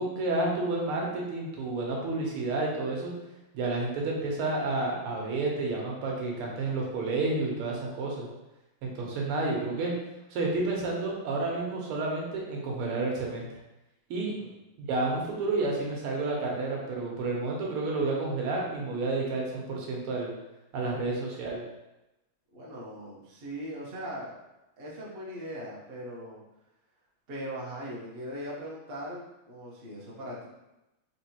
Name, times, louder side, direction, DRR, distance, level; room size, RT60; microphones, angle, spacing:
voice 1, 0.0-3.1 3.5-8.3 8.8-9.9 10.3-13.4 14.1-14.3 14.8-20.3 20.7-21.6, right 2 dB, 90° right, -2 dB, 1.8 m, -30 dB
voice 2, 22.5-24.3 24.8-26.4 27.3-30.5, equal, 60° right, -5 dB, 0.6 m, -40 dB
4.2 x 3.3 x 2.8 m, 0.97 s
omnidirectional pair, 2.4 m